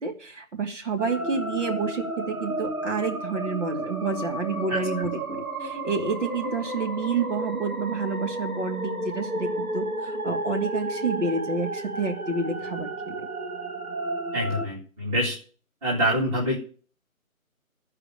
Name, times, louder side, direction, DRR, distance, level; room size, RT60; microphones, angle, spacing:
voice 1, 0.0-13.3, right 4 dB, 55° right, 2 dB, 2.8 m, -29 dB
sound 1, 1.0-14.7, right 1 dB, 90° right, 2.2 m, -32 dB
voice 2, 14.3-15.4 15.8-16.6, equal, 10° right, -6 dB, 2.2 m, -25 dB
13.5 x 5.0 x 8.8 m, 0.42 s
figure-of-eight pair, 160°, 42 cm